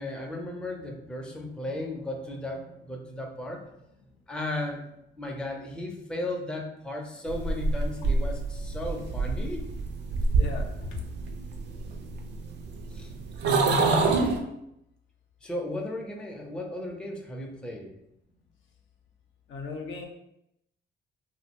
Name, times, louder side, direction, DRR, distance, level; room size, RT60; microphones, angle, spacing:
voice 1, 0.0-3.8 4.3-4.8 5.2-9.7 12.9-13.1 13.7-14.1 15.4-17.9, left 1 dB, 5° left, 0 dB, 0.4 m, -35 dB
sound 1, 7.3-14.4, right 3 dB, 60° right, 0.4 m, -27 dB
voice 2, 10.3-10.9 19.5-20.0, left 4 dB, 70° left, 2 dB, 0.5 m, -37 dB
2.5 x 2.0 x 2.8 m, 0.80 s
cardioid pair, 90°, 20 cm